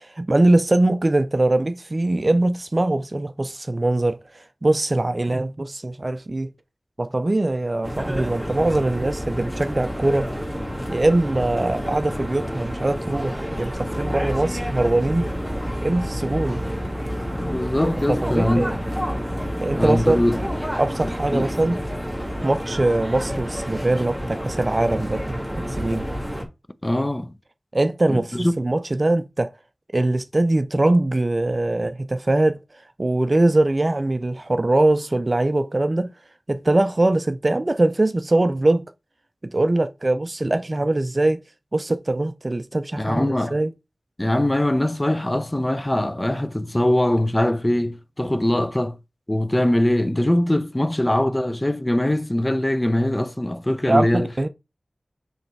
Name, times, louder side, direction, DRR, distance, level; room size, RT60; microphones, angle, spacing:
voice 1, 0.0-6.5 7.0-10.3 10.9-15.3 15.8-16.6 18.1-18.8 19.6-20.2 20.8-21.8 22.4-26.1 27.7-29.5 29.9-36.1 36.5-38.8 39.4-41.4 41.7-43.7 53.9-54.5, right 2 dB, 45° right, 0.5 m, -22 dB
sound 1, 7.8-26.4, equal, 5° left, 2.2 m, -29 dB
sound 2, 13.7-20.6, equal, 15° right, 2.8 m, -34 dB
voice 2, 17.3-18.7 19.8-20.4 21.0-21.5 26.8-27.3 28.1-28.5 43.0-43.6 44.2-49.0 49.3-54.3, left 1 dB, 25° left, 0.6 m, -22 dB
6.6 x 3.2 x 4.6 m
wide cardioid pair, 45°, 0 cm